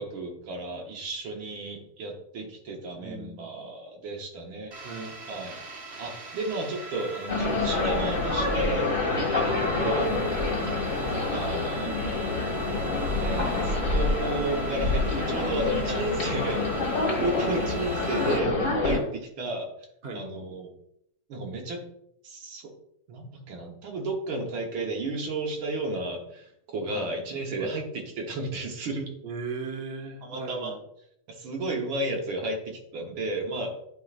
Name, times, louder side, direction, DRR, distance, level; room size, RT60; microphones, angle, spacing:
voice 1, 0.0-4.7 5.3-5.6 6.0-8.9 9.3-10.1 11.3-11.9 13.2-16.6 17.2-19.0 19.4-19.7 20.1-20.7 21.3-21.8 22.2-22.7 23.1-29.1 30.2-30.7 31.3-33.7, right 2 dB, 70° right, 1 dB, 1.8 m, -33 dB
voice 2, 3.0-3.4 4.8-5.2 9.1-9.3 18.9-19.1 20.0-20.2 26.9-27.1 27.6-27.7 29.2-30.8, right 3 dB, 45° right, 2 dB, 0.8 m, -37 dB
sound 1, 4.7-18.4, right 2 dB, 85° right, 0.5 m, -40 dB
sound 2, 7.3-19.0, left 2 dB, 40° left, 1.7 m, -27 dB
9.9 x 4.6 x 2.4 m, 0.75 s
omnidirectional pair, 2.4 m